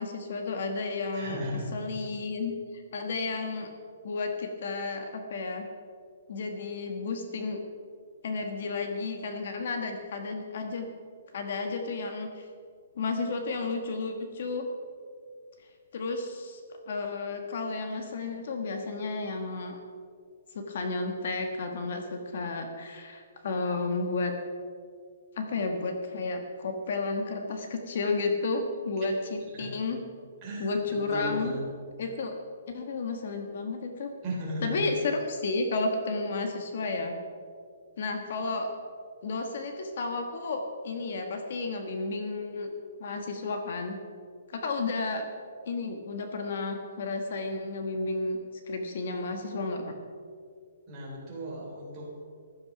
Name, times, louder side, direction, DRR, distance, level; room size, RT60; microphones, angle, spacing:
voice 1, 0.0-1.4 1.7-3.7 4.0-5.7 6.3-7.6 8.2-10.9 11.3-12.5 13.0-14.7 15.9-16.6 16.9-19.8 20.5-24.3 25.4-30.0 30.6-31.5 32.0-32.3 32.7-34.1 34.6-37.1 38.0-38.7 39.2-42.7 43.0-44.0 44.5-45.3 45.7-48.4 48.7-49.9, left 3 dB, 45° left, 5 dB, 1.4 m, -32 dB
voice 2, 1.1-1.8 29.5-29.7 30.4-30.8 31.1-31.6 34.2-34.8 50.9-52.3, equal, 20° right, -4 dB, 3.3 m, -36 dB
15.0 x 11.5 x 6.0 m, 2.1 s
hypercardioid pair, 180°, 0 cm